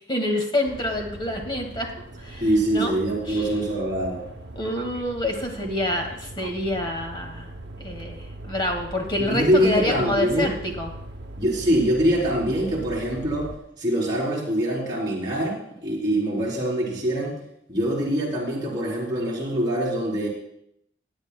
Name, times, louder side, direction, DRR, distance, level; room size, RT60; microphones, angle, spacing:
voice 1, 0.1-1.9 2.2-2.9 3.3-3.5 4.6-7.5 7.8-10.9, left 1 dB, 25° left, 2 dB, 1.8 m, -27 dB
sound 1, 0.6-13.6, right 1 dB, 75° right, 0.8 m, -40 dB
voice 2, 2.4-4.2 9.2-10.5 11.4-17.4 17.7-20.3, right 1 dB, 25° right, -6 dB, 3.3 m, -24 dB
19.0 x 9.8 x 2.2 m, 0.75 s
head